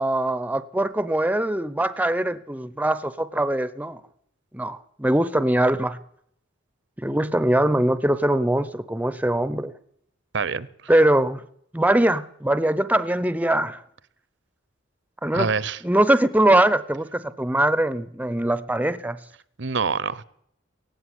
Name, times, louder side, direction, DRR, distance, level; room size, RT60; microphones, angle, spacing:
voice 1, 0.0-4.0 4.5-6.0 7.0-9.7 10.9-11.4 11.7-13.8 15.2-15.5 15.8-19.2, right 1 dB, 10° right, 15 dB, 0.7 m, -22 dB
voice 2, 10.3-10.7 15.3-15.8 19.6-20.2, right 5 dB, 65° right, 19 dB, 0.9 m, -25 dB
17.0 x 15.5 x 9.9 m, 0.70 s
head